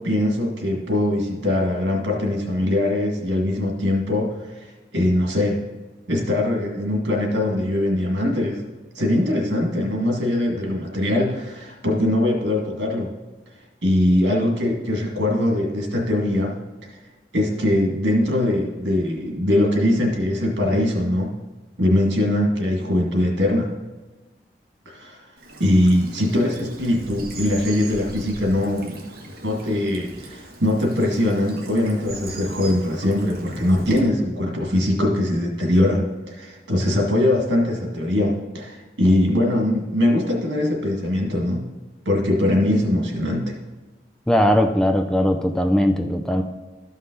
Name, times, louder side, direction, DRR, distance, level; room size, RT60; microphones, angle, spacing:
voice 1, 0.0-4.7 4.9-5.6 6.1-8.6 9.0-13.1 13.8-16.6 17.3-21.3 21.8-23.7 24.9-25.2 25.6-29.0 29.4-41.7 42.1-43.5, left 1 dB, 90° right, 1 dB, 2.0 m, -21 dB
Bird vocalization bird call bird song / Stream, 25.4-34.0, right 2 dB, 55° right, 1.2 m, -39 dB
voice 2, 44.3-46.4, equal, 5° left, 5 dB, 0.4 m, -19 dB
13.0 x 5.6 x 3.9 m, 1.2 s
head